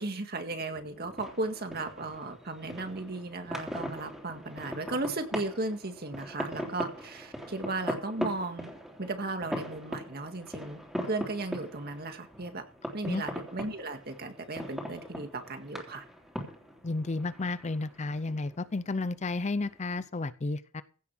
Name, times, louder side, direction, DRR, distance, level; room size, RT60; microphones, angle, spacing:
voice 1, 0.0-8.7 9.0-10.8 11.1-12.6 12.9-16.0, right 2 dB, 50° right, 6 dB, 1.9 m, -36 dB
sound 1, 0.7-20.0, equal, ahead, 3.2 m, -41 dB
voice 2, 16.8-20.8, left 3 dB, 35° left, 15 dB, 0.5 m, -32 dB
16.0 x 7.4 x 6.2 m, 0.40 s
head